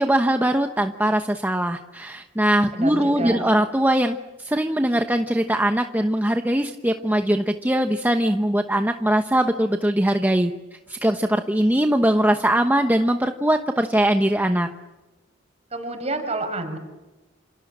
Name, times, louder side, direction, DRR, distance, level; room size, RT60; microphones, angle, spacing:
voice 1, 0.0-10.5 10.9-14.7, right 1 dB, 10° right, 6 dB, 1.0 m, -21 dB
voice 2, 2.7-3.5 15.7-16.8, right 2 dB, 35° right, 6 dB, 5.8 m, -28 dB
28.0 x 27.5 x 7.4 m, 1.1 s
head